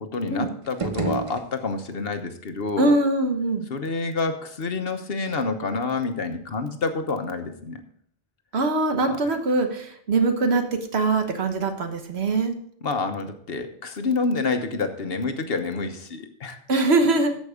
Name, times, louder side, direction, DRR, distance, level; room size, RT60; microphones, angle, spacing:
voice 1, 0.0-3.0 3.7-7.8 9.1-9.2 12.8-16.6, left 4 dB, 65° left, 7 dB, 1.3 m, -28 dB
sound 1, 0.6-2.1, right 4 dB, 35° right, 0.7 m, -31 dB
voice 2, 2.8-3.7 8.5-12.5 16.7-17.3, right 3 dB, 75° right, 7 dB, 1.4 m, -22 dB
14.0 x 5.3 x 4.9 m, 0.63 s
omnidirectional pair, 1.1 m